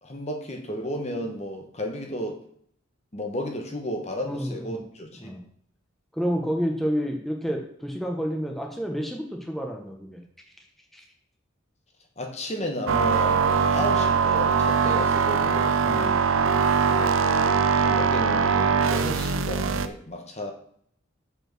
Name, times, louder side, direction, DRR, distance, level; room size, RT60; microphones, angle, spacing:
voice 1, 0.0-2.4 3.1-5.4 12.2-15.8 16.9-17.2 17.8-20.5, left 1 dB, 35° left, 3 dB, 1.1 m, -33 dB
voice 2, 4.2-4.8 5.2-5.4 6.1-10.2 10.9-11.0 15.8-16.2, equal, ahead, 1 dB, 1.1 m, -29 dB
sound 1, 12.9-19.9, right 5 dB, 85° right, 0.6 m, -22 dB
7.2 x 5.6 x 6.1 m, 0.64 s
head